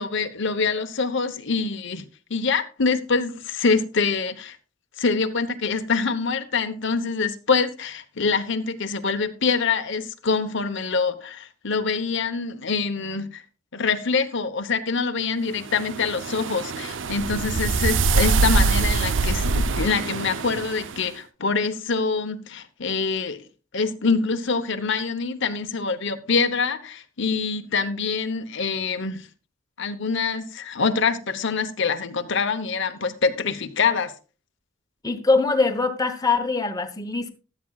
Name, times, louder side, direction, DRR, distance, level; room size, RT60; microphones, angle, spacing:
voice 1, 0.0-2.0 2.3-4.6 5.0-13.4 13.7-23.4 23.7-29.3 29.8-34.1, left 4 dB, 60° left, 0.9 m, -25 dB
sound 1, 15.7-21.0, right 4 dB, 65° right, 0.6 m, -23 dB
voice 2, 35.0-37.3, left 3 dB, 20° left, 1.0 m, -22 dB
16.0 x 12.0 x 2.4 m
head